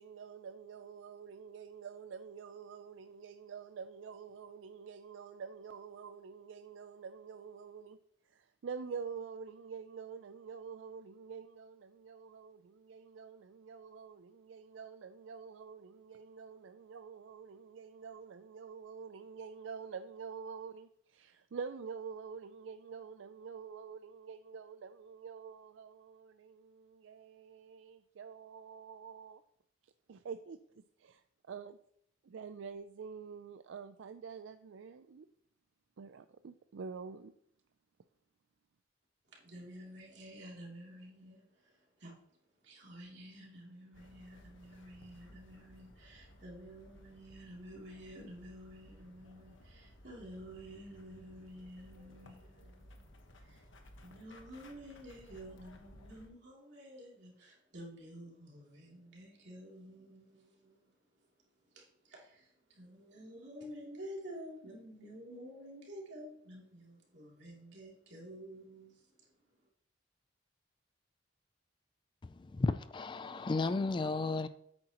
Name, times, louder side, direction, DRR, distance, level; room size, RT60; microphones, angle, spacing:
voice 1, 0.0-8.0 8.2-29.4 29.8-31.8 32.2-35.3 36.0-37.3, right 6 dB, 80° right, 0.4 m, -47 dB
voice 2, 39.2-42.1 42.6-61.2 61.6-69.7, equal, 60° right, 3.0 m, -51 dB
sound 1, 43.9-56.3, left 1 dB, 85° left, 1.3 m, -58 dB
voice 3, 72.2-74.5, left 3 dB, 25° left, 0.3 m, -33 dB
9.9 x 8.7 x 3.0 m
head